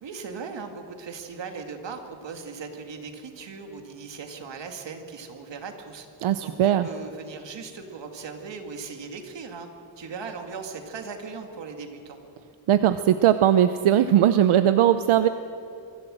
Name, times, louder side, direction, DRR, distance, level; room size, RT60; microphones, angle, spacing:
voice 1, 0.0-6.1 6.4-9.7 10.0-12.2, right 5 dB, 60° right, 5 dB, 2.4 m, -38 dB
voice 2, 6.2-6.9 12.7-15.3, right 11 dB, 85° right, 11 dB, 0.8 m, -19 dB
23.5 x 15.0 x 7.7 m, 2.7 s
wide cardioid pair, 140°, 48 cm